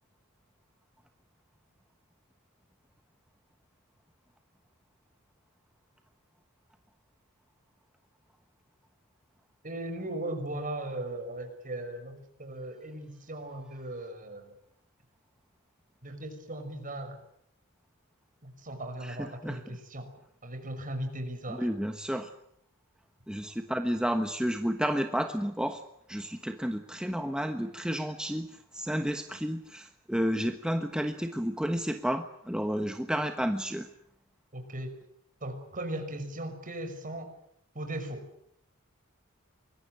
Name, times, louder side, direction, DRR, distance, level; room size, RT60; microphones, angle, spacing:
voice 1, 9.6-14.6 16.0-17.2 18.4-20.1 20.4-21.7 34.5-35.0 35.4-37.3 37.7-38.3, right 1 dB, 40° right, 7 dB, 5.8 m, -38 dB
voice 2, 19.0-19.6 21.6-22.3 23.3-25.8 26.1-33.9, equal, 5° right, 6 dB, 1.2 m, -31 dB
25.0 x 21.5 x 9.1 m, 0.68 s
head